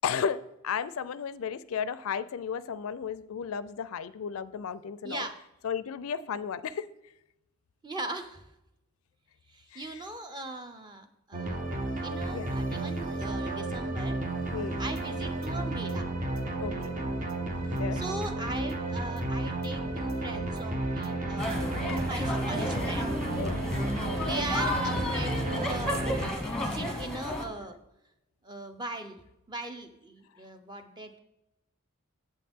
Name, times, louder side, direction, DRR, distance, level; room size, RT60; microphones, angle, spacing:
voice 1, 0.0-5.3 5.6-6.9 9.7-9.8 12.3-12.5 14.5-14.8 16.6-16.9 17.7-18.0 23.4-23.6, left 7 dB, 70° left, 16 dB, 0.4 m, -34 dB
voice 2, 5.0-5.4 7.8-8.4 9.5-11.6 12.0-14.2 14.8-16.1 17.7-23.1 24.2-27.8 28.4-29.2 29.5-31.2, right 1 dB, 20° right, 7 dB, 0.7 m, -39 dB
sound 1, 11.3-26.3, right 2 dB, 35° right, 1.1 m, -32 dB
sound 2, 14.7-22.0, right 1 dB, 70° right, 0.9 m, -46 dB
sound 3, 21.4-27.4, left 1 dB, 5° left, 1.1 m, -32 dB
8.5 x 7.9 x 3.6 m, 0.89 s
head